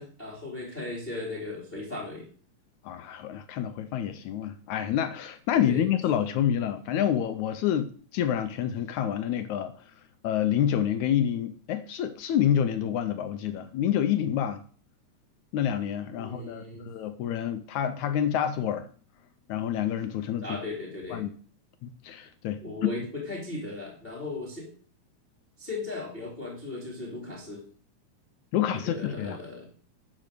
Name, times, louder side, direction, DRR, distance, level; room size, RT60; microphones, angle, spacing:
voice 1, 0.0-2.2 5.7-5.8 16.2-16.9 20.4-21.2 22.6-24.7 25.6-27.6 28.9-29.7, left 2 dB, 20° left, 2.3 m, -37 dB
voice 2, 2.8-9.7 10.2-14.6 15.5-18.9 19.5-20.6 21.1-21.3 21.8-22.9 28.5-29.4, left 10 dB, 80° left, 1.7 m, -28 dB
11.0 x 5.1 x 6.6 m
omnidirectional pair, 4.0 m